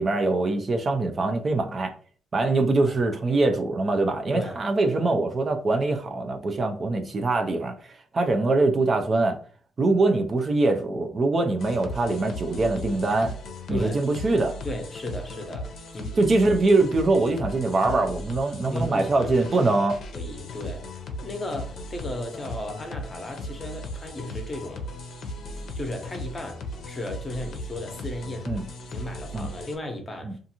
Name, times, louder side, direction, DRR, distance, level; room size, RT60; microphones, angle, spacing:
voice 1, 0.0-1.9 2.3-9.4 9.8-13.3 13.7-14.6 16.2-20.0 28.5-28.6 29.3-29.5 30.2-30.3, right 2 dB, 40° right, 0.4 m, -23 dB
voice 2, 4.3-4.7 13.7-14.0 14.6-16.2 18.7-19.5 20.1-24.8 25.7-30.4, left 1 dB, 25° left, 0.7 m, -35 dB
sound 1, 11.6-29.8, left 1 dB, 65° left, 0.5 m, -37 dB
2.5 x 2.4 x 2.8 m
cardioid pair, 90°, 0 cm